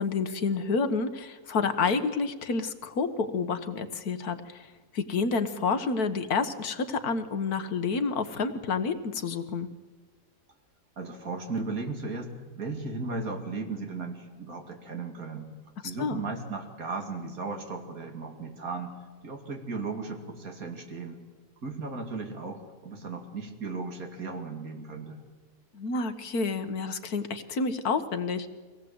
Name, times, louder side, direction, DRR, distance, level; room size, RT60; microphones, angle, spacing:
voice 1, 0.0-4.7 4.9-9.7 16.0-16.2 25.7-28.5, left 4 dB, 90° left, 9 dB, 1.8 m, -29 dB
voice 2, 11.0-15.5 15.8-19.0 19.2-21.2 21.6-25.2, right 3 dB, 70° right, 4 dB, 2.9 m, -36 dB
24.0 x 18.0 x 8.0 m, 1.4 s
omnidirectional pair, 1.6 m